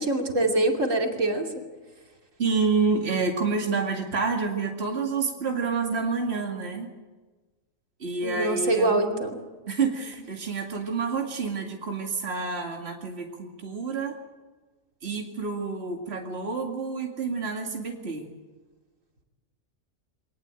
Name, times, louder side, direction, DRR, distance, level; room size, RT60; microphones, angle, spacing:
voice 1, 0.1-1.5 8.2-9.4, right 2 dB, 70° right, 2 dB, 3.2 m, -24 dB
voice 2, 2.4-6.9 8.0-9.0 9.7-14.2 15.0-18.3, right 4 dB, 50° right, 1 dB, 2.5 m, -28 dB
24.5 x 19.0 x 9.0 m, 1.3 s
omnidirectional pair, 1.4 m